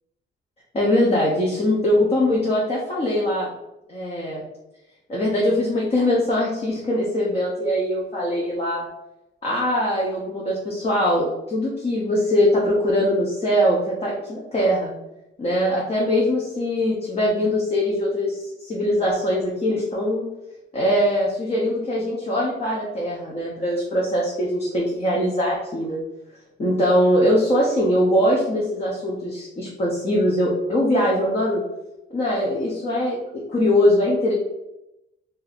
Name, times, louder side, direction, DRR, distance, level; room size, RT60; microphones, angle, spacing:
voice 1, 0.7-3.5 3.9-4.4 5.1-8.8 9.4-14.9 15.4-20.3 20.7-26.0 26.6-31.6 32.1-34.3, left 1 dB, 30° left, -4 dB, 0.9 m, -22 dB
2.8 x 2.7 x 4.0 m, 0.92 s
cardioid pair, 90°, 20 cm